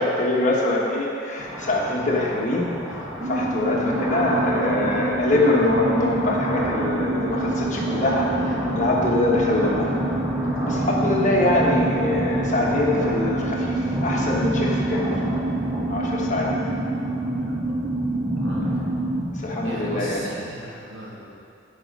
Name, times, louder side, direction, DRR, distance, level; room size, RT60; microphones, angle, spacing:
voice 1, 0.0-10.0 10.6-15.1 15.9-16.5 19.3-20.2, left 2 dB, 40° left, -3 dB, 1.3 m, -24 dB
sound 1, 1.4-20.5, equal, 10° right, 1.2 m, -30 dB
sound 2, 3.2-19.2, right 2 dB, 25° right, 0.3 m, -28 dB
voice 2, 17.4-17.7 18.4-18.7 19.6-21.3, right 1 dB, 80° right, -4 dB, 1.9 m, -36 dB
11.0 x 5.1 x 5.4 m, 2.5 s
head